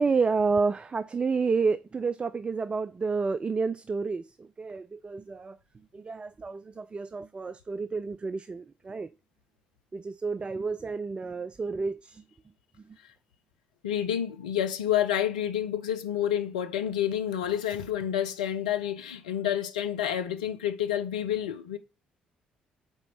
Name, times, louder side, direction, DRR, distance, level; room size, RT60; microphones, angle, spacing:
voice 1, 0.0-5.6 5.9-9.1 9.9-12.2, right 4 dB, 25° right, 0.3 m, -30 dB
voice 2, 13.8-21.8, left 10 dB, 75° left, 0.5 m, -29 dB
5.2 x 4.2 x 5.5 m
figure-of-eight pair, 45°, 4 cm